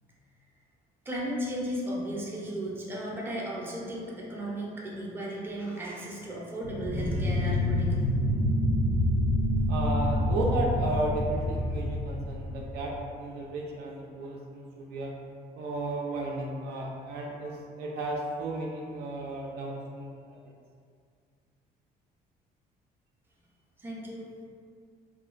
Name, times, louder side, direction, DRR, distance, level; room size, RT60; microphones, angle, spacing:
voice 1, 1.1-8.1 23.8-24.3, right 1 dB, 15° right, -5 dB, 0.5 m, -35 dB
sound 1, 6.6-13.1, left 1 dB, 60° left, 0.4 m, -27 dB
voice 2, 9.7-15.2 15.6-20.4, right 1 dB, 75° right, -2 dB, 0.4 m, -34 dB
2.4 x 2.1 x 2.4 m, 2.2 s
cardioid pair, 110°, 17 cm